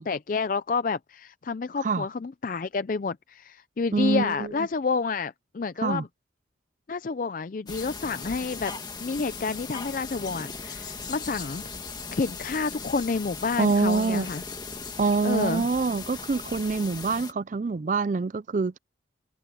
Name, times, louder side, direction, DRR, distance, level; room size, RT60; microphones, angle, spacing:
voice 1, 0.0-6.1 6.9-8.7 9.0-11.6 12.1-14.4 15.2-15.7, left 4 dB, 45° left, 0.4 m, -29 dB
voice 2, 3.9-4.5 5.8-6.0 13.6-14.3 15.0-18.8, right 4 dB, 40° right, 0.4 m, -25 dB
sound 1, 7.7-17.3, left 4 dB, 20° left, 2.0 m, -38 dB
head